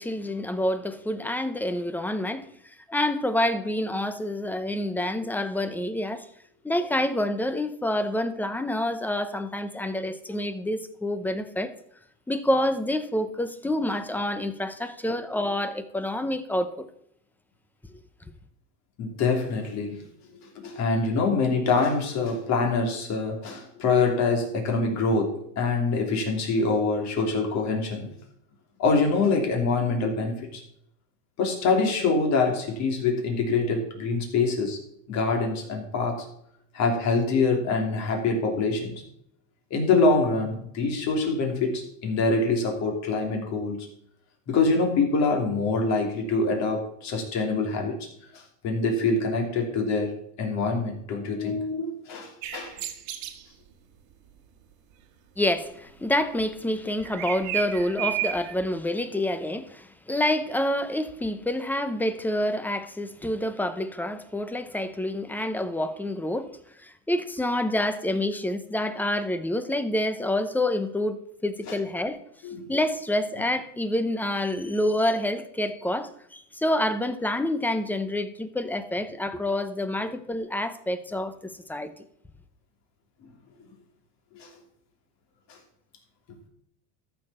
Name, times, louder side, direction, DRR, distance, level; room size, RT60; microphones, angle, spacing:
voice 1, 0.0-6.3 6.6-11.7 12.3-16.8 55.4-66.5 66.8-72.2 72.7-81.9, left 1 dB, 5° left, 0.6 m, -28 dB
voice 2, 19.0-20.0 20.6-28.1 28.8-30.6 31.4-34.8 35.1-36.3 36.7-39.0 39.7-43.9 44.5-48.1 48.3-52.7 71.7-71.8 72.4-72.6 84.3-84.5 85.5-85.6, left 3 dB, 45° left, 3.0 m, -25 dB
sound 1, 52.4-53.4 57.0-58.5, right 12 dB, 55° right, 1.5 m, -31 dB
13.5 x 6.7 x 4.2 m
supercardioid pair, 140°, 38 cm